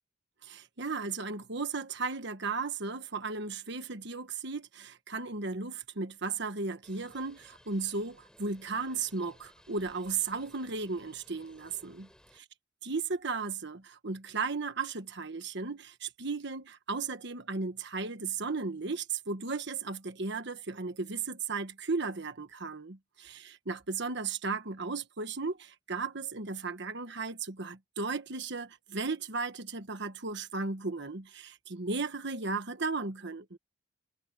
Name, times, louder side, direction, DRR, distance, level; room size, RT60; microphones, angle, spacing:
voice 1, 0.4-12.1 12.8-33.6, right 4 dB, 65° right, 1.4 m, -35 dB
Bird, 6.8-12.4, equal, 5° left, 6.6 m, -60 dB
head